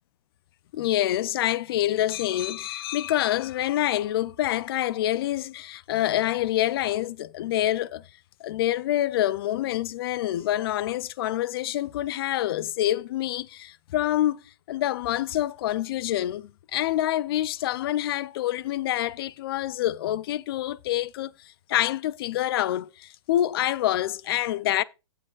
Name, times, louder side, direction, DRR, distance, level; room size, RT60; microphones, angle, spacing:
voice 1, 0.7-8.0 8.4-14.4 14.7-24.8, left 13 dB, 45° left, 0.5 m, -26 dB
16.0 x 6.5 x 2.4 m
hypercardioid pair, 140°, 17 cm